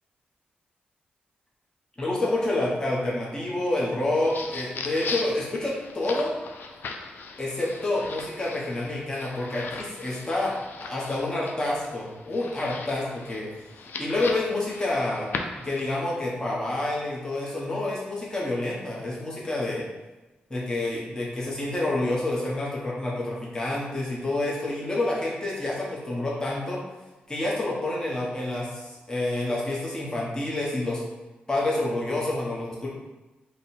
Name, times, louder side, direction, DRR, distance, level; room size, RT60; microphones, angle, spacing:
voice 1, 2.0-6.3 7.4-10.5 10.9-13.5 14.0-15.3 15.6-19.9 20.5-26.8 27.3-31.0 31.5-32.9, left 2 dB, 20° left, -6 dB, 1.1 m, -28 dB
sound 1, 4.0-16.0, left 4 dB, 70° left, 0.4 m, -39 dB
3.5 x 2.3 x 4.3 m, 1.1 s
cardioid pair, 75°, 3 cm